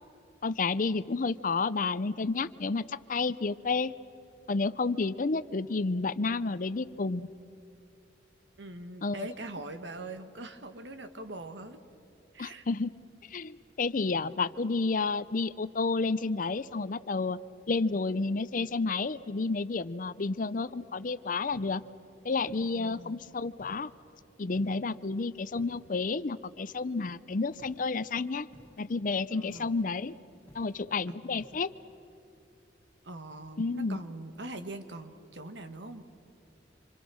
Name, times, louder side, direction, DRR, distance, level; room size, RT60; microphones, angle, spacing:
voice 1, 0.4-3.9 4.5-7.3 9.0-9.3 12.4-12.9 13.3-17.4 17.7-21.8 22.2-23.9 24.4-28.5 28.8-30.2 30.5-31.7 33.6-34.0, left 3 dB, 45° left, 16 dB, 0.6 m, -30 dB
voice 2, 8.6-11.8 12.3-12.6 22.7-23.2 29.3-29.7 31.1-31.4 33.0-36.0, right 2 dB, 70° right, 8 dB, 1.6 m, -42 dB
sound 1, 21.5-21.9 22.5-23.0 23.6-24.0 24.5-25.0 25.5-26.1 27.6-27.9 28.5-28.9 29.5-29.9 30.5-30.9 31.4-31.7, equal, 10° left, 3.0 m, -57 dB
27.0 x 26.0 x 6.3 m, 2.7 s
head